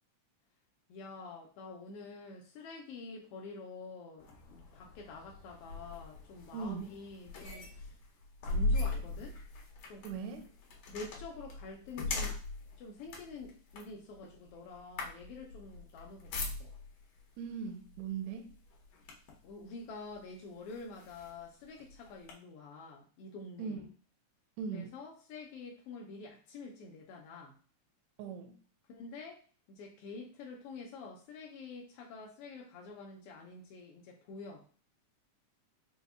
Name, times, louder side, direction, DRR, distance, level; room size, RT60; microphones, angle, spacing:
voice 1, 0.9-8.0 8.4-9.4 9.9-10.1 10.9-12.4 12.8-16.7 19.4-23.8 24.7-27.6 28.9-29.4 29.7-34.6, left 3 dB, 80° left, 0 dB, 1.3 m, -47 dB
sound 1, 4.2-17.0 17.9-18.1 18.5-19.5 20.1-20.2 20.7-22.3, left 2 dB, 65° left, 1.7 m, -39 dB
voice 2, 6.5-6.9 10.0-10.5 17.4-18.5 23.6-23.9 24.6-24.9 28.2-28.6, right 6 dB, 80° right, 4 dB, 1.8 m, -39 dB
5.1 x 2.2 x 3.4 m, 0.39 s
omnidirectional pair, 3.4 m